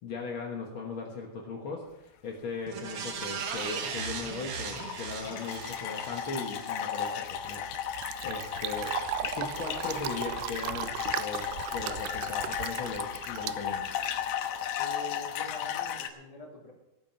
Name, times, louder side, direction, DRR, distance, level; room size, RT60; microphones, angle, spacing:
voice 1, 0.0-7.6 7.9-13.9, left 4 dB, 70° left, 0 dB, 1.1 m, -38 dB
sound 1, 2.7-7.2 7.6-7.7, right 5 dB, 60° right, 1.5 m, -38 dB
sound 2, 3.7-4.0 4.4-16.1, left 9 dB, 90° left, 3.0 m, -35 dB
Fill (with liquid), 7.2-14.3, right 13 dB, 85° right, 2.6 m, -37 dB
voice 2, 14.8-16.7, equal, 10° left, -2 dB, 2.9 m, -45 dB
17.0 x 9.1 x 5.8 m, 0.94 s
omnidirectional pair, 4.6 m